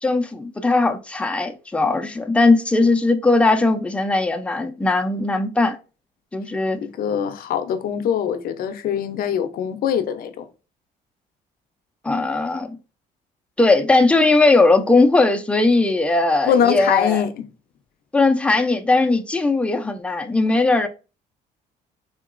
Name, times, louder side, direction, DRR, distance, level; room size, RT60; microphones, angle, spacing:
voice 1, 0.0-5.8 6.3-6.8 12.0-12.8 13.6-17.3 18.1-20.9, left 3 dB, 5° left, 0.4 m, -18 dB
voice 2, 7.0-10.5 16.5-17.4, left 8 dB, 60° left, 0.5 m, -22 dB
3.7 x 2.8 x 2.4 m
cardioid pair, 110°, 17 cm